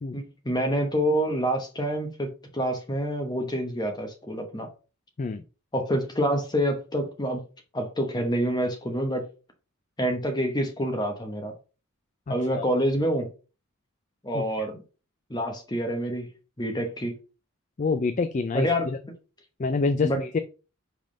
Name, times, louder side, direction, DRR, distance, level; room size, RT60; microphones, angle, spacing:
voice 1, 0.1-4.7 5.7-7.4 7.7-9.3 10.0-11.5 12.3-13.3 14.2-14.8 15.3-16.3 16.6-17.1 18.5-18.9 20.0-20.2, equal, 20° left, 1.0 m, -27 dB
voice 2, 12.3-12.6 14.3-14.4 17.8-19.0 19.6-20.4, left 4 dB, 35° left, 0.4 m, -27 dB
5.3 x 3.7 x 5.0 m
head